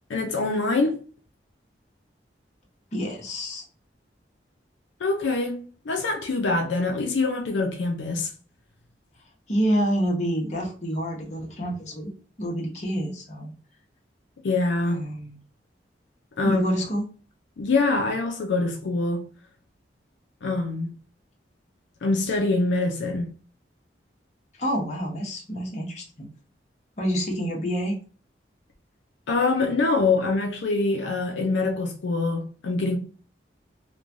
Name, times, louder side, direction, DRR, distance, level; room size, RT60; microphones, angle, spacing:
voice 1, 0.1-1.0 5.0-8.3 14.4-15.0 16.4-16.6 17.6-19.2 20.4-20.9 22.0-23.3 29.3-33.0, left 3 dB, 80° left, 0.5 m, -24 dB
voice 2, 2.9-3.6 9.5-12.1 12.4-13.5 14.9-15.4 16.4-17.0 24.6-26.3 27.0-28.0, equal, 40° left, 0.8 m, -27 dB
3.1 x 2.2 x 2.5 m
head